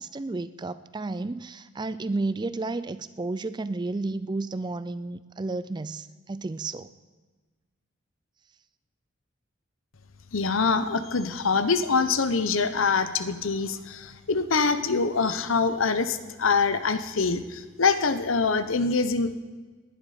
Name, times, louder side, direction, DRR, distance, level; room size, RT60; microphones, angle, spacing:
voice 1, 0.0-6.9, right 3 dB, 20° right, 14 dB, 0.4 m, -32 dB
voice 2, 10.3-19.3, left 4 dB, 80° left, 11 dB, 0.9 m, -24 dB
19.5 x 11.0 x 5.0 m, 1.3 s
head